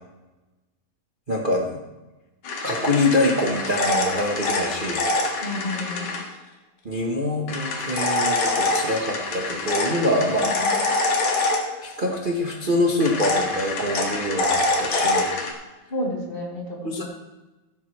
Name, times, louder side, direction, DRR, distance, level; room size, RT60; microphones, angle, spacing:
voice 1, 1.3-1.7 2.6-5.2 6.8-10.5 11.8-15.3 16.8-17.0, left 1 dB, 75° right, -1 dB, 0.4 m, -24 dB
sound 1, 2.4-6.2 7.5-12.1 13.0-15.5, left 2 dB, 70° left, 3.1 m, -25 dB
voice 2, 5.4-6.1 10.4-10.8 15.9-17.0, left 1 dB, 20° left, -3 dB, 2.9 m, -31 dB
15.5 x 12.5 x 3.3 m, 1.1 s
omnidirectional pair, 3.3 m